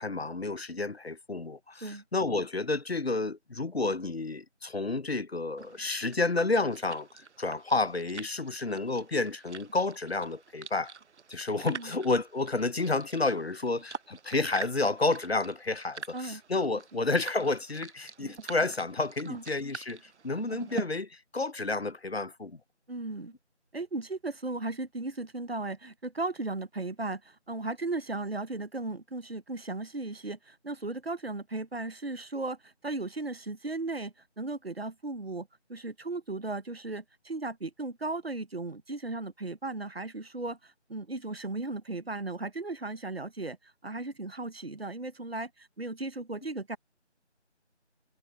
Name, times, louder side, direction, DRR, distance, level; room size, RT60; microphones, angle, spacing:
voice 1, 0.0-10.9 11.3-22.6, left 3 dB, 60° left, 0.7 m, -30 dB
sound 1, 5.6-20.8, right 6 dB, 75° right, 0.5 m, -45 dB
voice 2, 22.9-23.3 23.7-46.8, right 2 dB, 60° right, 0.9 m, -36 dB
figure-of-eight pair, 170°, 35 cm